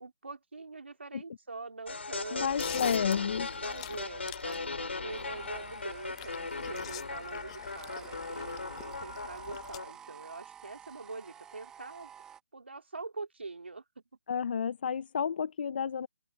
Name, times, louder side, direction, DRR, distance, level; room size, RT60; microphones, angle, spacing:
voice 1, 0.0-2.7 3.5-12.1 12.5-14.0, right 3 dB, 90° right, 2.6 m, -44 dB
sound 1, 1.9-9.9, left 3 dB, 90° left, 2.4 m, -38 dB
voice 2, 2.3-3.5 14.3-16.1, left 7 dB, 55° left, 0.4 m, -31 dB
sound 2, 2.4-9.8, left 15 dB, 30° left, 0.7 m, -47 dB
sound 3, 5.1-12.4, right 8 dB, 10° right, 1.3 m, -51 dB
open air
hypercardioid pair, 155°, 6 cm